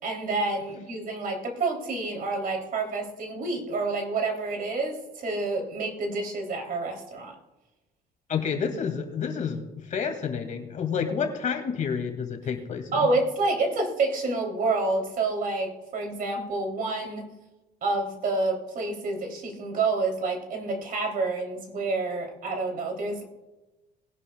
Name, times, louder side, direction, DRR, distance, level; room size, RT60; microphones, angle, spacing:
voice 1, 0.0-7.3 12.9-17.3 17.8-23.2, right 3 dB, 55° right, 2 dB, 3.3 m, -28 dB
voice 2, 8.3-13.1, left 6 dB, 45° left, 4 dB, 2.4 m, -29 dB
20.5 x 11.0 x 2.4 m, 1.1 s
cardioid pair, 110°, 17 cm